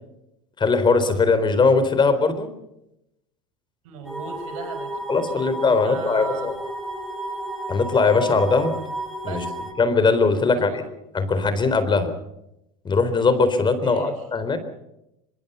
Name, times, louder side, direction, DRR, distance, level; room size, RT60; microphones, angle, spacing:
voice 1, 0.6-2.5 5.1-6.5 7.7-8.7 9.2-9.4 9.8-10.8 11.1-12.1 12.8-14.6, left 4 dB, 25° left, 11 dB, 4.1 m, -20 dB
voice 2, 3.8-4.9 5.3-6.5 9.2-9.6 10.5-10.8 13.8-14.2, right 7 dB, 75° right, 8 dB, 5.3 m, -38 dB
sound 1, 4.0-9.7, right 1 dB, ahead, 6.5 m, -32 dB
24.5 x 23.5 x 5.7 m, 0.84 s
hypercardioid pair, 90°, 18 cm